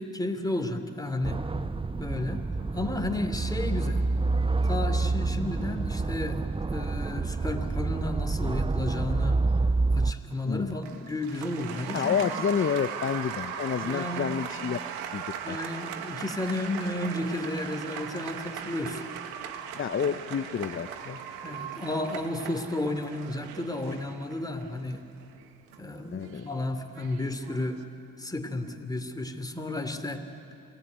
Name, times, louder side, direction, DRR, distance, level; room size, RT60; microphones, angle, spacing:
voice 1, 0.0-1.4 2.0-2.4 2.7-4.0 4.6-9.4 9.9-12.3 13.8-14.3 15.4-19.0 20.0-20.1 21.4-25.0 25.8-27.8 28.2-30.2, left 1 dB, 10° left, 6 dB, 2.8 m, -32 dB
sound 1, 1.2-10.1, right 3 dB, 15° right, 0.6 m, -28 dB
Applause, 10.7-27.8, right 8 dB, 85° right, 1.5 m, -39 dB
voice 2, 11.9-14.8 15.1-15.6 19.7-21.2 26.1-26.5, left 7 dB, 35° left, 10 dB, 0.8 m, -29 dB
28.0 x 18.0 x 9.4 m, 2.6 s
supercardioid pair, 55°, 35 cm